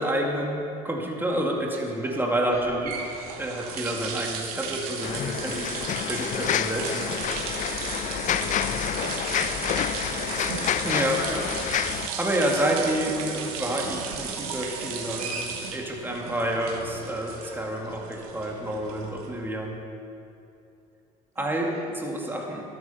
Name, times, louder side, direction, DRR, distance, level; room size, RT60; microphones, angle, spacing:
voice 1, 0.0-2.9 3.4-7.1 10.8-11.5 12.2-19.8 21.4-21.7 22.0-22.6, right 1 dB, 10° right, -1 dB, 2.3 m, -29 dB
voice 2, 1.7-2.8 8.9-11.1 21.4-22.4, right 3 dB, 40° right, 0 dB, 1.7 m, -44 dB
sound 1, 2.5-19.5, right 6 dB, 85° right, 1.6 m, -35 dB
sound 2, 5.0-12.1, left 10 dB, 45° left, 0.5 m, -28 dB
12.5 x 9.6 x 5.7 m, 2.6 s
supercardioid pair, 80°, 18 cm